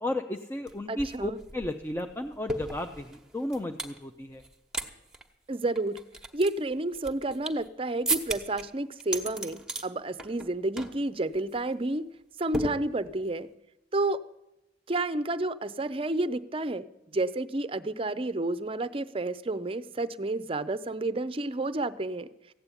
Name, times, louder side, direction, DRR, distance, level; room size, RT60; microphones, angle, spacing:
voice 1, 0.0-4.4, left 1 dB, 15° left, 5 dB, 0.5 m, -34 dB
sound 1, 0.7-0.8 1.0-4.0 4.4-4.9 5.1-5.2 5.8-7.7 8.1-8.6 9.0-9.9 10.2-10.5 10.8-11.0 11.3-11.6 12.5-13.3, right 2 dB, 5° right, 1.1 m, -35 dB
voice 2, 0.9-1.4 5.5-6.0 6.3-12.1 12.4-13.5 13.9-14.2 14.9-16.9 17.1-22.3, right 2 dB, 30° right, 15 dB, 0.6 m, -30 dB
15.5 x 8.5 x 9.8 m, 0.94 s
head